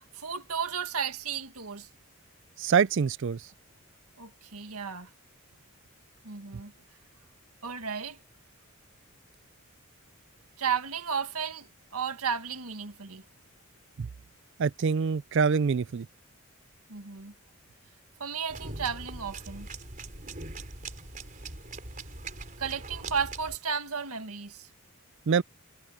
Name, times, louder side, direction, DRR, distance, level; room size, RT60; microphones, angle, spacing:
voice 1, 0.1-1.9 4.2-5.1 6.2-6.7 7.6-8.2 10.6-13.2 16.9-17.3 18.2-19.7 22.6-24.7, right 6 dB, 90° right, 1.9 m, -33 dB
voice 2, 2.6-3.4 14.0-14.1 14.6-16.1 25.3-25.4, right 6 dB, 55° right, 0.4 m, -25 dB
sound 1, 18.5-23.6, right 3 dB, 35° right, 4.0 m, -41 dB
head